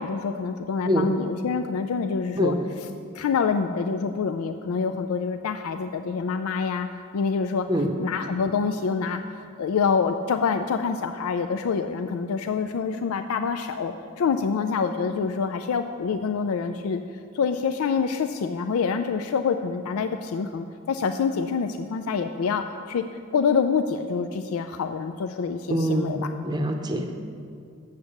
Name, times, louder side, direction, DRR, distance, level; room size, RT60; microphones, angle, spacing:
voice 1, 0.0-2.9 3.1-6.9 7.1-7.7 8.0-9.2 9.6-17.0 17.3-26.3, left 5 dB, 85° left, 8 dB, 0.4 m, -26 dB
voice 2, 25.7-26.2 26.4-27.2, equal, 20° right, 5 dB, 0.7 m, -24 dB
8.1 x 7.0 x 6.5 m, 2.3 s
head